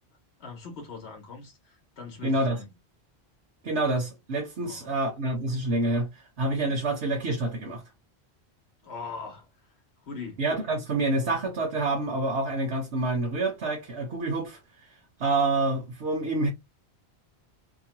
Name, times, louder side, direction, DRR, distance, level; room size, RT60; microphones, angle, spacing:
voice 1, 0.4-2.7 4.6-5.0 8.8-9.7 10.0-10.5, left 4 dB, 75° left, 1.0 m, -41 dB
voice 2, 2.2-2.6 3.6-6.1 6.4-7.8 10.4-14.6 15.2-16.5, right 2 dB, 80° right, 1.2 m, -27 dB
2.9 x 2.1 x 2.9 m
omnidirectional pair, 1.1 m